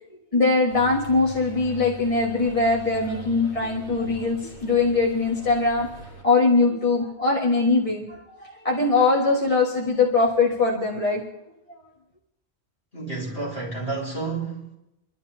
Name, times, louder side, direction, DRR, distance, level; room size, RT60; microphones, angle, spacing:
voice 1, 0.3-5.9 6.2-11.2, left 3 dB, 30° left, 1.8 m, -21 dB
sound 1, 0.7-6.2, left 4 dB, 70° left, 6.0 m, -42 dB
voice 2, 12.9-14.7, right 3 dB, 55° left, 5.5 m, -30 dB
29.5 x 12.5 x 2.8 m
omnidirectional pair, 1.2 m